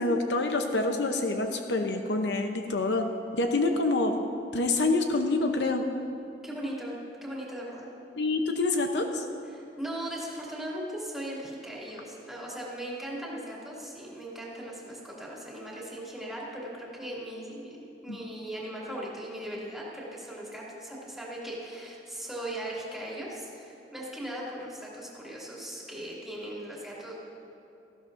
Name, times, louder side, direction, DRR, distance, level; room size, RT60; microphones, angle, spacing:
voice 1, 0.0-4.2 4.5-5.9 8.2-9.2 18.1-18.2, left 2 dB, 75° left, 4 dB, 0.8 m, -27 dB
voice 2, 6.4-7.9 9.5-27.1, right 1 dB, ahead, -6 dB, 2.5 m, -38 dB
18.0 x 14.0 x 2.6 m, 2.8 s
head